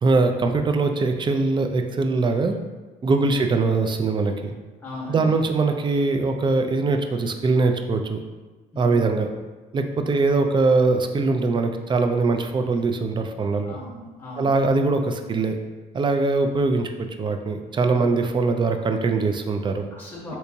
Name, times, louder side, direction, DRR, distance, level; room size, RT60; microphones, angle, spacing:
voice 1, 0.0-2.6 3.0-4.5 5.1-8.2 8.8-9.3 9.7-13.8 14.4-15.6 15.9-19.9, right 3 dB, 30° right, 6 dB, 0.4 m, -22 dB
voice 2, 3.1-3.6 4.8-5.5 8.7-9.1 13.6-14.5 17.9-18.2 19.9-20.4, left 2 dB, 10° left, -4 dB, 1.0 m, -38 dB
3.3 x 2.9 x 2.7 m, 1.2 s
supercardioid pair, 75°, 17 cm